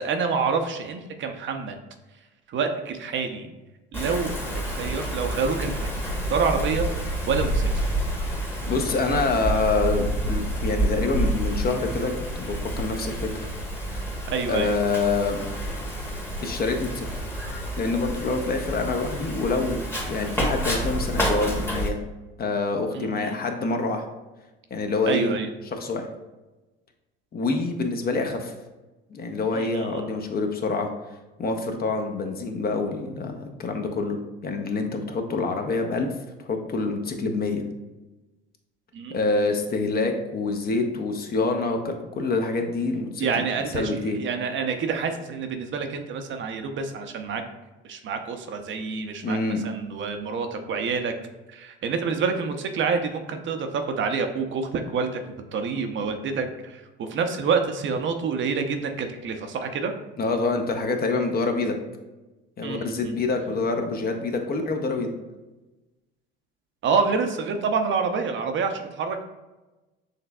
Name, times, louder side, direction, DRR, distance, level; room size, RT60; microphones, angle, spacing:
voice 1, 0.0-1.8 2.5-3.5 3.9-5.9 6.3-6.9 7.3-7.8 14.3-14.8 22.9-23.3 25.1-25.5 29.5-30.1 38.9-39.1 43.2-47.4 47.8-49.4 49.6-51.1 51.5-59.9 62.6-63.1 66.8-69.2, right 5 dB, 40° right, 6 dB, 0.6 m, -27 dB
Wind, 3.9-21.9, right 1 dB, 10° left, 1.1 m, -29 dB
voice 2, 8.7-13.3 14.5-15.4 16.4-17.1 17.8-22.0 22.4-24.0 24.7-25.3 25.7-26.1 27.3-28.5 29.1-30.9 31.4-34.2 34.4-36.1 36.4-37.6 39.1-43.4 43.7-44.2 49.2-49.6 60.2-61.8 62.6-65.1, left 3 dB, 30° left, 5 dB, 0.7 m, -26 dB
6.5 x 3.2 x 2.3 m, 1.1 s
hypercardioid pair, 75°, 30 cm